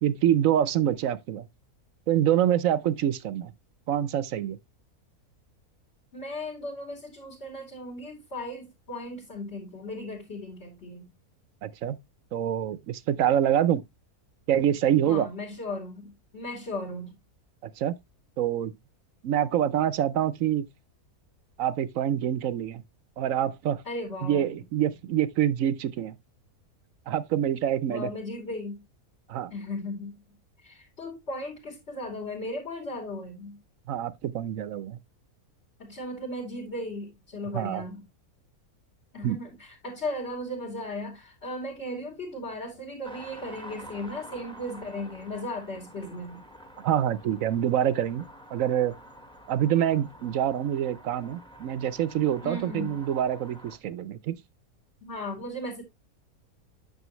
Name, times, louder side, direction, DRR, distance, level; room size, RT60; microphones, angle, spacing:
voice 1, 0.0-1.5 2.1-3.5 3.9-4.6 11.6-12.0 12.3-13.8 14.5-15.3 17.6-17.9 18.4-18.7 19.2-20.7 21.6-22.8 23.2-23.8 24.2-26.1 27.1-28.1 29.3-29.5 33.9-35.0 37.5-37.8 39.2-39.4 46.8-48.2 48.5-48.9 49.5-54.4, right 10 dB, 65° right, 1.0 m, -26 dB
voice 2, 6.1-11.1 15.0-17.2 23.8-24.6 27.9-28.8 29.5-30.2 30.6-33.6 35.8-38.0 39.1-46.4 52.4-53.0 55.0-55.8, left 1 dB, 45° left, 2.9 m, -36 dB
sound 1, 43.0-53.8, equal, 5° left, 1.0 m, -48 dB
9.3 x 6.2 x 3.0 m
omnidirectional pair, 1.6 m